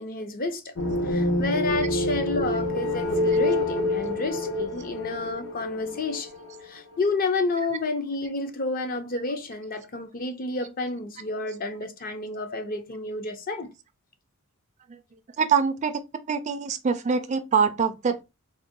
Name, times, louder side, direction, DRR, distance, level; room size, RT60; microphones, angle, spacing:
voice 1, 0.0-6.3 6.6-13.7, left 3 dB, 40° left, 0.5 m, -30 dB
sound 1, 0.8-6.6, left 1 dB, 70° left, 0.8 m, -27 dB
voice 2, 15.4-16.0 16.3-18.2, right 6 dB, 30° right, 0.4 m, -24 dB
3.8 x 2.1 x 3.6 m
head